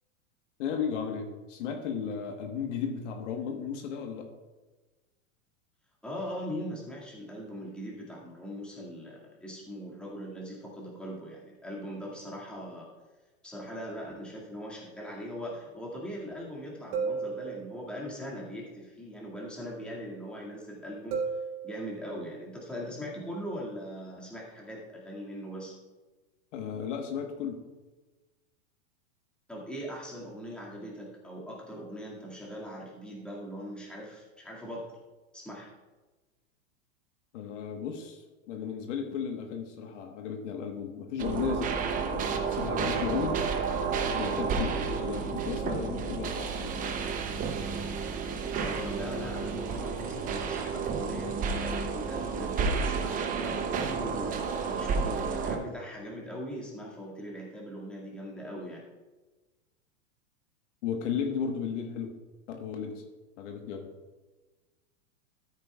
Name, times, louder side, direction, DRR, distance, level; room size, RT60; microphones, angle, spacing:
voice 1, 0.6-4.3 26.5-27.6 37.3-43.4 44.1-46.9 60.8-62.1 62.5-63.0 63.4-63.9, left 7 dB, 65° left, 4 dB, 1.4 m, -35 dB
voice 2, 6.0-12.9 13.4-21.2 21.6-25.8 29.5-34.9 35.3-35.7 48.5-58.8, equal, ahead, -5 dB, 2.1 m, -40 dB
sound 1, 14.5-14.6 16.9-18.1 21.1-22.2, right 5 dB, 60° right, 3.2 m, -34 dB
sound 2, 41.2-55.6, right 5 dB, 20° right, 0.7 m, -31 dB
13.5 x 8.9 x 2.3 m, 1.2 s
supercardioid pair, 145°, 39 cm